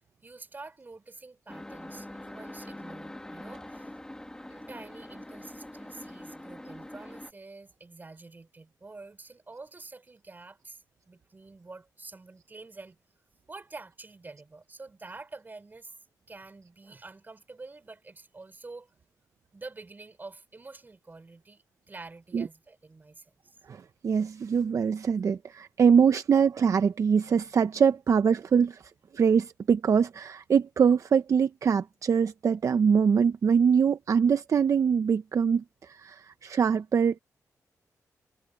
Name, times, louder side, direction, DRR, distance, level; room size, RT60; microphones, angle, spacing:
voice 1, 0.2-4.0 4.5-13.0 13.5-16.0 16.3-18.9 19.5-23.6, right 3 dB, 30° right, 5.3 m, -47 dB
sound 1, 1.5-7.3, left 1 dB, 10° left, 2.0 m, -44 dB
voice 2, 23.7-28.8 29.1-37.2, right 6 dB, 55° right, 0.7 m, -23 dB
cardioid pair, 85°, 6 cm